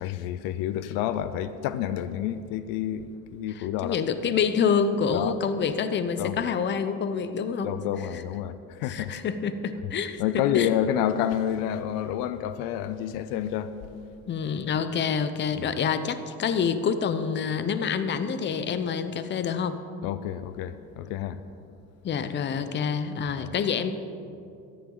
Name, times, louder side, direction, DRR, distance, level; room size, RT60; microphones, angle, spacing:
voice 1, 0.0-4.0 5.1-5.3 6.2-6.4 7.6-9.1 10.2-13.8 20.0-21.4 23.4-23.5, left 10 dB, 80° left, 13 dB, 0.6 m, -29 dB
voice 2, 3.6-7.7 8.8-10.2 10.5-10.7 14.3-19.8 22.0-23.9, left 6 dB, 35° left, 11 dB, 0.7 m, -27 dB
14.0 x 10.5 x 3.9 m, 2.6 s
supercardioid pair, 105°, 34 cm